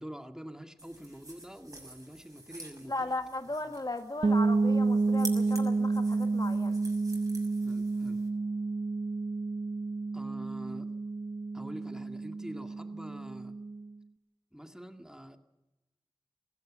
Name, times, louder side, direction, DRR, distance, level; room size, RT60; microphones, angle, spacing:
voice 1, 0.0-3.1 7.6-8.2 10.1-10.9 11.5-13.5 14.5-15.4, equal, 5° right, 5 dB, 2.0 m, -46 dB
sound 1, 0.8-8.3, right 2 dB, 40° right, 6.2 m, -48 dB
voice 2, 2.9-6.8, left 2 dB, 50° left, 7 dB, 1.6 m, -36 dB
sound 2, 4.2-13.9, right 3 dB, 75° right, 0.9 m, -30 dB
19.5 x 16.5 x 8.8 m, 1.0 s
wide cardioid pair, 45°, 9 cm